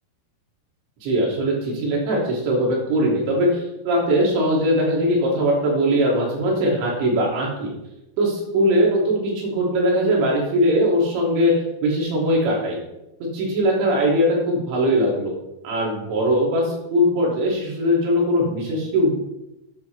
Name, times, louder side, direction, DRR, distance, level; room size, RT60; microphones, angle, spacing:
voice 1, 1.0-7.7 8.2-11.5 11.8-12.8 13.3-15.4 15.6-19.1, equal, 75° right, -3 dB, 5.4 m, -20 dB
13.5 x 10.5 x 3.5 m, 0.93 s
omnidirectional pair, 5.3 m